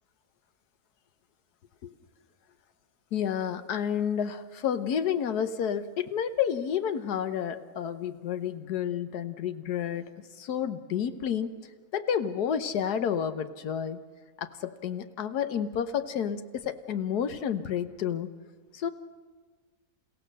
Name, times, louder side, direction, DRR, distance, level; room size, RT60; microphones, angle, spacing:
voice 1, 3.1-10.0 10.3-14.0 14.4-18.3 18.7-18.9, left 8 dB, 80° left, 10 dB, 1.5 m, -30 dB
29.0 x 16.0 x 6.5 m, 1.4 s
omnidirectional pair, 1.7 m